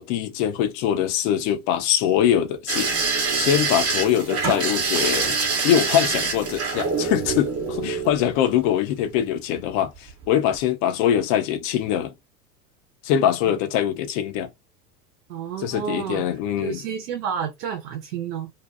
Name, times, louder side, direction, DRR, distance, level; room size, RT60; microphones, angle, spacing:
voice 1, 0.0-5.4 5.6-12.1 13.0-14.5 15.6-16.8, left 10 dB, 50° left, 0.7 m, -23 dB
sound 1, 2.7-8.7 10.0-10.3 10.6-10.7, right 4 dB, 30° right, 0.9 m, -25 dB
voice 2, 15.3-16.2 16.6-18.5, right 8 dB, 70° right, 0.8 m, -30 dB
2.5 x 2.2 x 2.5 m
hypercardioid pair, 95°, 47 cm